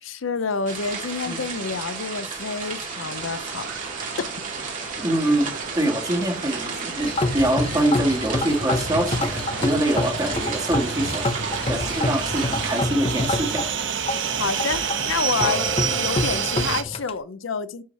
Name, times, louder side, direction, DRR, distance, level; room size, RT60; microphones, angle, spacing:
voice 1, 0.0-3.9 4.2-4.3 14.4-17.8, left 5 dB, 80° left, 0.7 m, -28 dB
sound 1, 0.7-12.8, right 5 dB, 45° right, 2.5 m, -33 dB
sound 2, 3.0-16.8, right 7 dB, 70° right, 1.0 m, -30 dB
voice 2, 5.0-11.3 11.7-13.7, right 1 dB, 20° right, 2.1 m, -24 dB
sound 3, 7.0-17.1, left 2 dB, 30° left, 0.8 m, -28 dB
10.5 x 4.7 x 4.2 m
head